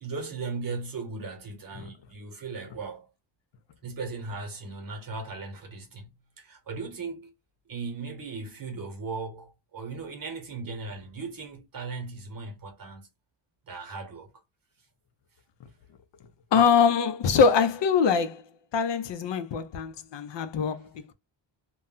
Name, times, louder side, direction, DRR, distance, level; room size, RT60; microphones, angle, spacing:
voice 1, 0.0-3.1 3.8-7.3 7.7-13.1 13.7-14.3, right 4 dB, 45° right, 1.0 m, -37 dB
voice 2, 16.5-18.4 18.7-21.1, left 6 dB, 65° left, 0.6 m, -23 dB
2.3 x 2.1 x 3.7 m
wide cardioid pair, 145°, 48 cm